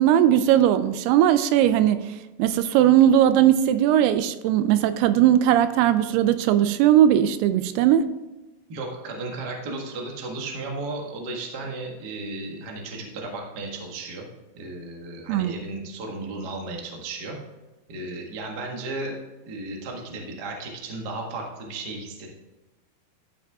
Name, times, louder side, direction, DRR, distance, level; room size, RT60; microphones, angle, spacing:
voice 1, 0.0-2.1 2.4-8.1 15.3-15.5, right 11 dB, 85° right, 2.5 m, -19 dB
voice 2, 8.7-14.2 14.5-17.4 17.9-19.2 19.4-22.3, right 2 dB, 55° right, 1.0 m, -34 dB
13.5 x 6.2 x 3.6 m
omnidirectional pair, 4.7 m